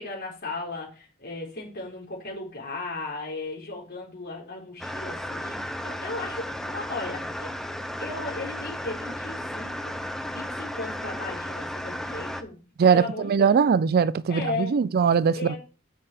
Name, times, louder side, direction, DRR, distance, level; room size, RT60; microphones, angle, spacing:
voice 1, 0.0-7.5 8.0-12.6 12.9-13.7 14.3-14.8 15.3-15.6, left 3 dB, 50° left, 4.0 m, -36 dB
sound 1, 4.8-12.4, equal, ahead, 0.6 m, -34 dB
voice 2, 12.8-15.6, right 6 dB, 50° right, 0.4 m, -21 dB
6.8 x 5.6 x 4.9 m
head